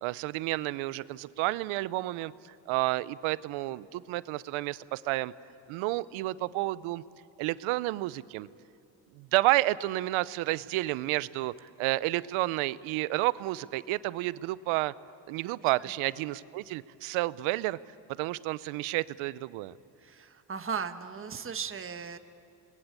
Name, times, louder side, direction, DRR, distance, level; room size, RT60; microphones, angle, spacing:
voice 1, 0.0-5.3 5.7-7.0 7.4-8.5 9.1-14.9 15.3-17.8 18.1-19.7, right 18 dB, 80° right, 18 dB, 0.8 m, -30 dB
voice 2, 20.0-22.2, right 6 dB, 25° right, 8 dB, 1.3 m, -36 dB
29.0 x 21.0 x 8.4 m, 2.6 s
cardioid pair, 95°, 48 cm